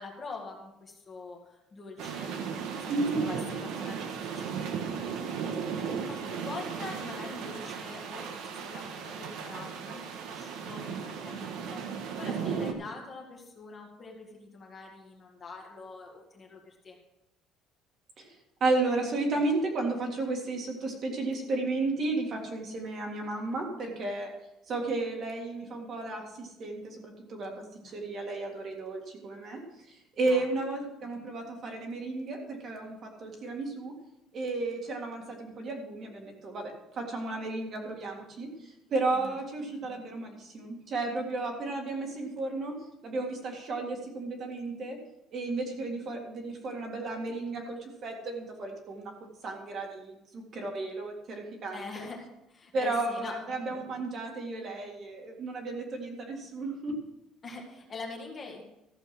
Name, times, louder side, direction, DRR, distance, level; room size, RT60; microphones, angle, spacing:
voice 1, 0.0-5.3 6.1-17.0 27.8-28.0 30.3-30.5 39.1-39.3 51.7-52.2 52.5-53.4 57.4-58.6, left 3 dB, 25° left, 1 dB, 1.8 m, -45 dB
sound 1, 2.0-12.7, right 6 dB, 60° right, 1.3 m, -36 dB
voice 2, 2.9-3.2 18.2-24.3 24.7-27.5 27.8-33.9 34.3-42.7 43.0-45.0 45.3-49.1 49.4-52.1 52.7-57.0, right 2 dB, 35° right, 1 dB, 2.0 m, -33 dB
14.0 x 7.0 x 6.0 m, 0.89 s
cardioid pair, 175°, 0 cm